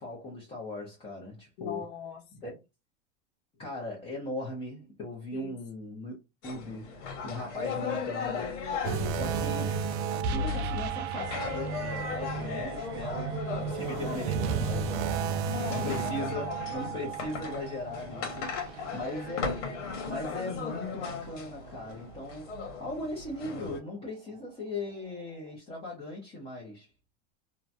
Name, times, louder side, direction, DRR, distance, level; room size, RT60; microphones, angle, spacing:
voice 1, 0.0-1.9 2.3-2.4 3.6-6.1 6.4-8.6 9.1-9.6 10.1-16.5 16.7-18.4 18.9-26.9, left 2 dB, 15° left, 0.8 m, -38 dB
voice 2, 1.6-2.6 5.3-5.6 8.8-9.2 15.5-16.1 18.6-19.1, left 7 dB, 65° left, 1.2 m, -40 dB
sound 1, 6.4-23.8, left 5 dB, 80° left, 1.2 m, -38 dB
sound 2, 8.8-20.3 20.7-20.9 21.5-21.6, right 6 dB, 70° right, 0.5 m, -33 dB
2.9 x 2.3 x 2.5 m
supercardioid pair, 150°, 35 cm